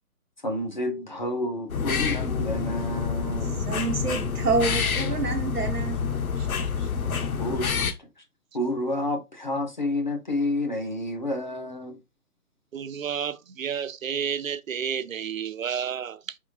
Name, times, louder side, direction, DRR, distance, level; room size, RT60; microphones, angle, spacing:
voice 1, 0.4-3.6 7.4-8.0 8.5-12.0, left 1 dB, 30° left, 0.6 m, -29 dB
sound 1, 1.7-7.9, left 6 dB, 65° left, 0.8 m, -27 dB
voice 2, 3.4-7.2, right 4 dB, 80° right, 0.9 m, -29 dB
voice 3, 12.7-16.4, right 8 dB, 60° right, 0.5 m, -31 dB
4.4 x 3.6 x 2.6 m
figure-of-eight pair, 140°, 46 cm